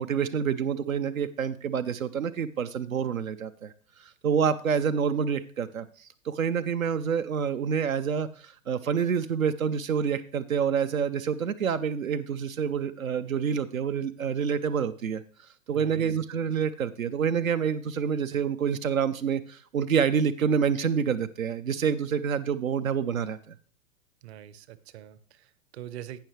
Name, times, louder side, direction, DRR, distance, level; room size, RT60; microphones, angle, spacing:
voice 1, 0.0-3.7 4.0-15.2 15.7-23.5, right 7 dB, 90° right, 12 dB, 0.6 m, -27 dB
voice 2, 15.7-16.2 24.2-26.2, right 12 dB, 55° right, 17 dB, 0.8 m, -44 dB
17.0 x 5.7 x 3.2 m, 0.42 s
hypercardioid pair, 110°, 40 cm